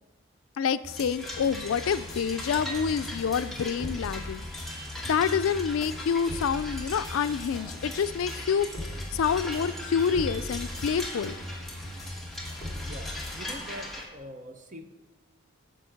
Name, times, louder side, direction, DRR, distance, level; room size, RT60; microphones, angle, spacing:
voice 1, 0.6-4.4 5.0-11.4, left 7 dB, 75° left, 14 dB, 0.4 m, -27 dB
sound 1, 0.8-13.4, left 1 dB, 15° left, 2.3 m, -40 dB
sound 2, 0.9-14.0, left 1 dB, ahead, 1.3 m, -40 dB
voice 2, 12.8-15.0, equal, 35° right, 6 dB, 0.8 m, -43 dB
9.9 x 5.1 x 6.4 m, 1.2 s
head